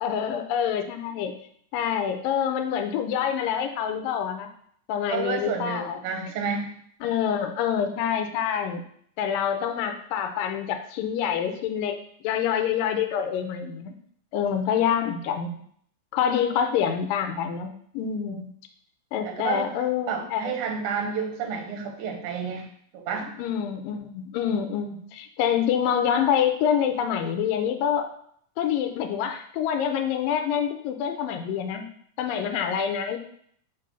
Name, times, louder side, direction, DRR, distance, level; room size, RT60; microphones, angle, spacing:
voice 1, 0.0-1.3 1.7-4.5 4.9-6.3 7.0-8.8 9.2-13.9 14.3-15.6 16.1-18.5 19.1-20.5 23.4-28.1 28.6-31.9 32.2-33.2, left 8 dB, 85° left, 6 dB, 2.3 m, -26 dB
voice 2, 5.1-6.7 19.2-19.7 20.1-22.7 23.1-23.3, right 6 dB, 70° right, 2 dB, 2.3 m, -30 dB
5.3 x 3.9 x 5.6 m, 0.64 s
omnidirectional pair, 3.9 m